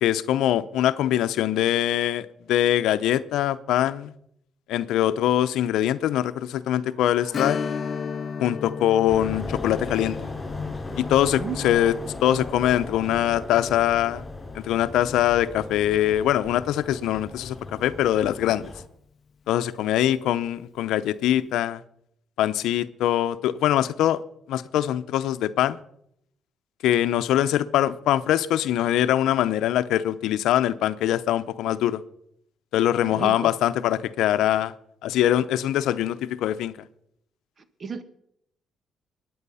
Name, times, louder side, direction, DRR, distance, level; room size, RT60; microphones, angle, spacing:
voice 1, 0.0-4.1 4.7-7.6 8.4-10.2 11.0-11.9 12.2-14.2 14.5-18.7 19.5-21.8 22.4-24.2 24.5-25.8 26.8-32.0 32.7-34.7 35.0-36.8, left 12 dB, 85° left, 0.7 m, -23 dB
sound 1, 6.2-10.7, right 4 dB, 90° right, 6.9 m, -55 dB
Strum, 7.3-16.5 16.8-16.9 19.5-19.7 20.1-20.2, left 6 dB, 50° left, 0.6 m, -36 dB
sound 2, 9.1-18.8, left 3 dB, 25° left, 4.8 m, -37 dB
voice 2, 11.3-11.7 33.0-33.5 37.6-38.0, right 5 dB, 40° right, 1.6 m, -34 dB
23.0 x 9.5 x 5.6 m
cardioid pair, 90°, 0 cm